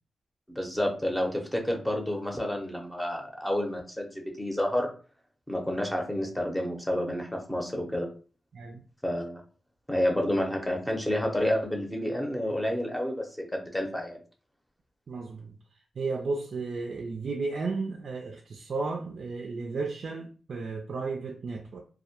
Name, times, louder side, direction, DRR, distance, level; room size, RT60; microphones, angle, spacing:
voice 1, 0.5-4.9 5.5-8.1 9.0-9.4 9.9-14.2, left 1 dB, 10° left, 0.7 m, -29 dB
voice 2, 15.1-15.5 16.0-21.8, right 3 dB, 65° right, 0.3 m, -33 dB
2.1 x 2.1 x 2.8 m
cardioid pair, 55°, 0 cm